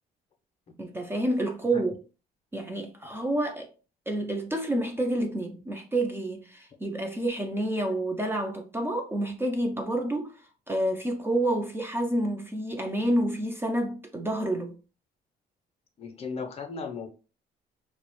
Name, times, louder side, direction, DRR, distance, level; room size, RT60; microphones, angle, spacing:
voice 1, 0.8-1.9 2.5-3.7 4.1-10.3 10.7-14.8, right 1 dB, 15° right, 0.4 m, -29 dB
voice 2, 16.0-17.1, left 5 dB, 35° left, 0.6 m, -36 dB
2.3 x 2.0 x 2.9 m
cardioid pair, 110°, 17 cm